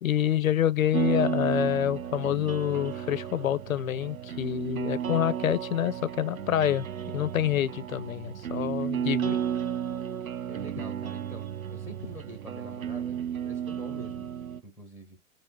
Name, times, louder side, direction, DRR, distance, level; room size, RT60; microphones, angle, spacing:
voice 1, 0.0-6.9 7.1-9.4, left 11 dB, 75° left, 0.5 m, -27 dB
sound 1, 0.9-14.6, right 9 dB, 75° right, 0.7 m, -33 dB
voice 2, 10.4-13.2 13.4-14.3 14.6-15.2, right 1 dB, 5° right, 1.0 m, -45 dB
5.3 x 2.0 x 3.6 m
figure-of-eight pair, 115°, 41 cm